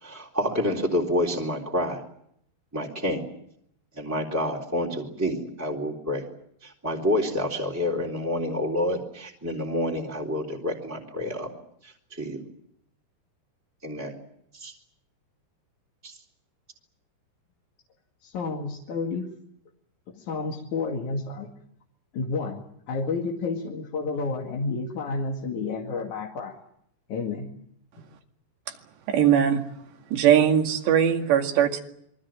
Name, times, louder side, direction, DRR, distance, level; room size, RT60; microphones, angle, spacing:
voice 1, 0.0-2.0 2.7-3.3 3.9-6.2 6.6-11.5 11.8-12.4 13.8-14.1 14.5-14.7 16.0-16.1, left 1 dB, 5° right, -2 dB, 3.1 m, -28 dB
voice 2, 18.2-19.3 20.1-21.5 22.1-26.6 27.1-27.6, left 4 dB, 50° left, 1 dB, 3.2 m, -30 dB
voice 3, 29.1-29.7 30.1-31.8, right 9 dB, 75° right, 4 dB, 4.3 m, -20 dB
27.0 x 23.5 x 7.5 m, 0.71 s
omnidirectional pair, 5.1 m